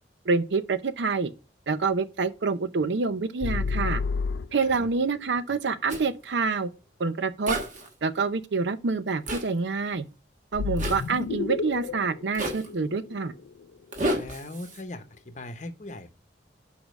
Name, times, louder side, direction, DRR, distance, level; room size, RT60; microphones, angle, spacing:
voice 1, 0.2-1.3 1.7-4.0 4.5-6.7 7.0-7.6 8.0-10.0 10.5-13.3, right 4 dB, 80° right, 0.6 m, -27 dB
sound 1, 3.4-5.0 10.5-13.6, left 5 dB, 80° left, 0.4 m, -31 dB
Zipper (clothing), 5.9-6.1 7.5-7.9 9.3-9.5 10.8-11.1 12.3-12.7 13.9-14.8, right 1 dB, 45° right, 1.4 m, -30 dB
voice 2, 14.2-16.1, left 2 dB, 40° left, 0.8 m, -40 dB
5.1 x 5.0 x 6.3 m
head